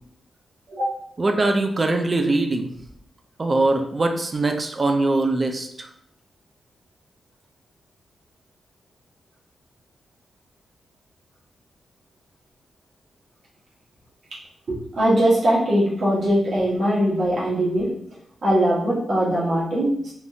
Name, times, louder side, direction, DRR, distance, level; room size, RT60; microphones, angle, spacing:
voice 1, 1.2-2.7 3.4-5.9, right 2 dB, 30° right, 5 dB, 0.3 m, -22 dB
voice 2, 14.7-17.9 18.4-20.1, equal, 55° right, -7 dB, 1.0 m, -21 dB
3.5 x 2.6 x 2.3 m, 0.69 s
wide cardioid pair, 145°, 0 cm